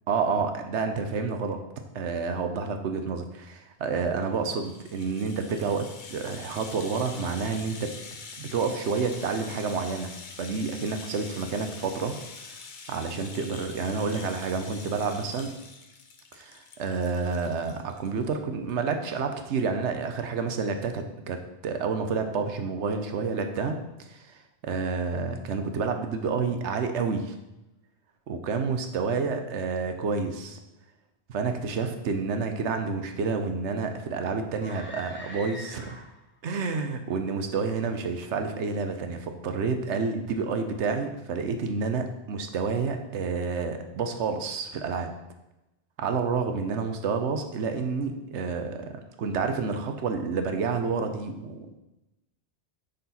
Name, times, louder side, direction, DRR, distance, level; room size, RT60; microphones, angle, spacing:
voice 1, 0.1-1.6 1.9-7.9 8.4-10.1 10.4-12.1 12.9-15.5 16.3-23.8 24.1-27.3 28.3-30.6 31.3-36.0 36.4-45.1 46.0-51.8, right 5 dB, 75° right, 6 dB, 1.1 m, -29 dB
Rattle (instrument), 4.2-18.4 18.7-18.8 19.1-19.2, left 4 dB, 50° left, 0.8 m, -45 dB
sound 1, 34.5-36.3, left 1 dB, 10° left, 1.1 m, -43 dB
10.0 x 4.3 x 4.2 m, 0.98 s
omnidirectional pair, 1.2 m